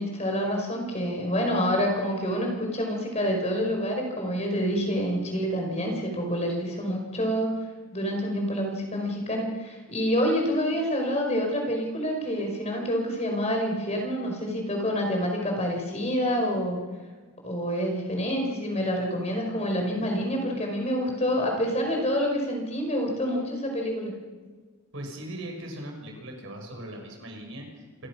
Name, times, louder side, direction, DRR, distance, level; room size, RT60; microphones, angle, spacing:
voice 1, 0.0-7.5 7.9-16.8 17.4-24.1, equal, 30° left, 2 dB, 5.1 m, -27 dB
voice 2, 24.9-28.1, right 1 dB, 60° right, 2 dB, 6.0 m, -39 dB
28.0 x 15.5 x 6.2 m, 1.4 s
head